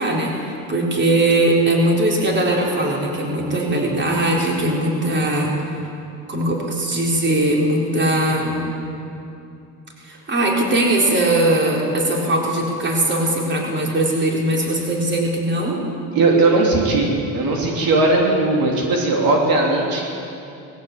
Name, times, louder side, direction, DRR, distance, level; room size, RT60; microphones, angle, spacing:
voice 1, 0.0-5.5 6.3-8.6 10.0-15.8, right 1 dB, 30° right, -1 dB, 4.1 m, -20 dB
voice 2, 16.1-20.0, right 2 dB, 70° right, 0 dB, 3.1 m, -18 dB
19.5 x 16.0 x 8.5 m, 2.7 s
cardioid pair, 110°, 37 cm